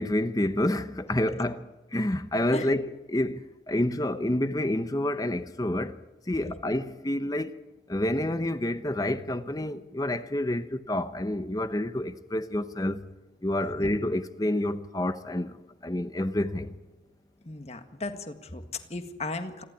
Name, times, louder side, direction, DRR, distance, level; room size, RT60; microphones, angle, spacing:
voice 1, 0.0-6.0 6.3-7.5 7.9-13.0 13.4-16.7, left 1 dB, 20° left, 0.8 m, -28 dB
voice 2, 17.5-19.6, left 2 dB, 35° left, 1.7 m, -36 dB
28.0 x 12.0 x 9.6 m
head